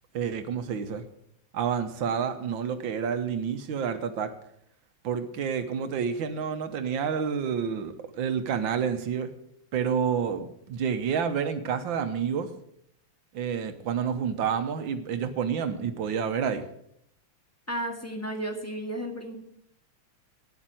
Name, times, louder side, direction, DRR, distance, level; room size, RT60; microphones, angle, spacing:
voice 1, 0.1-1.0 1.5-4.3 5.0-9.3 9.7-12.5 13.3-16.7, right 7 dB, 80° right, 9 dB, 1.7 m, -29 dB
voice 2, 17.7-19.4, right 1 dB, 10° left, 2 dB, 1.6 m, -33 dB
10.0 x 8.2 x 7.6 m, 0.75 s
omnidirectional pair, 2.1 m